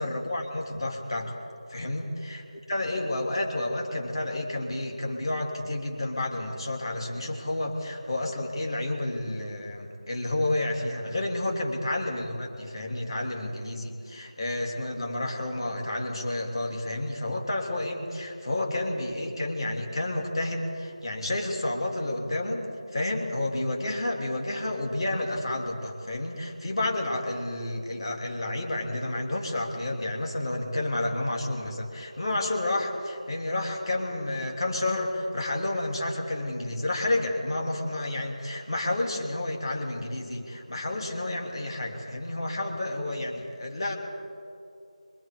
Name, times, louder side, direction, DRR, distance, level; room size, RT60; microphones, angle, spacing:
voice 1, 0.0-1.3 1.7-22.7 22.9-44.0, left 1 dB, 45° left, 1 dB, 3.0 m, -30 dB
24.0 x 23.0 x 5.0 m, 2.5 s
figure-of-eight pair, 165°, 4 cm